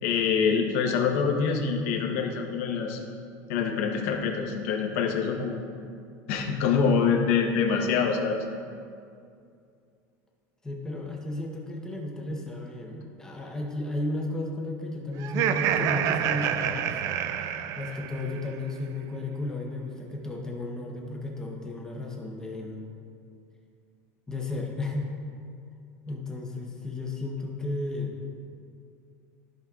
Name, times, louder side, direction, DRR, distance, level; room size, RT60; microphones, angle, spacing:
voice 1, 0.0-3.0 3.5-5.6 6.3-8.4 17.9-18.0, left 6 dB, 70° left, 2 dB, 1.1 m, -25 dB
voice 2, 10.6-17.0 17.4-22.9 24.3-25.1 26.1-28.1, left 2 dB, 10° left, -1 dB, 0.8 m, -34 dB
Laughter, 15.2-18.4, right 9 dB, 45° right, 0.3 m, -28 dB
13.5 x 5.2 x 2.4 m, 2.4 s
cardioid pair, 160°, 8 cm